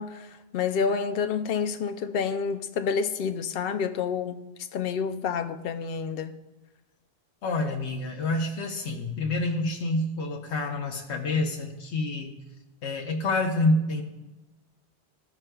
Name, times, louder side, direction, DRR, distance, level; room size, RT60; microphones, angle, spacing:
voice 1, 0.0-4.4 4.7-6.3, left 6 dB, 65° left, 0.7 m, -29 dB
voice 2, 7.4-12.4 12.8-14.0, left 2 dB, 85° left, 1.2 m, -27 dB
15.0 x 5.9 x 2.2 m
omnidirectional pair, 1.1 m